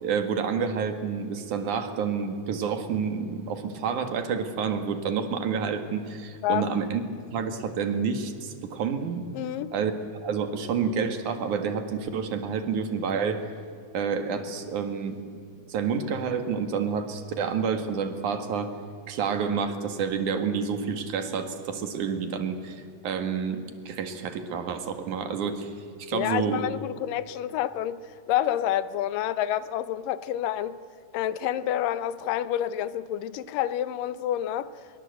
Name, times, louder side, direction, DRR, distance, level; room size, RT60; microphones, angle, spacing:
voice 1, 0.0-7.0 7.3-9.3 9.7-13.5 13.9-15.2 15.7-18.7 19.1-25.7 26.0-26.6, right 6 dB, 70° right, 7 dB, 3.1 m, -29 dB
voice 2, 9.3-9.7 26.1-30.8 31.1-34.7, left 11 dB, 90° left, 14 dB, 2.5 m, -28 dB
24.5 x 23.0 x 8.1 m, 2.3 s
omnidirectional pair, 3.8 m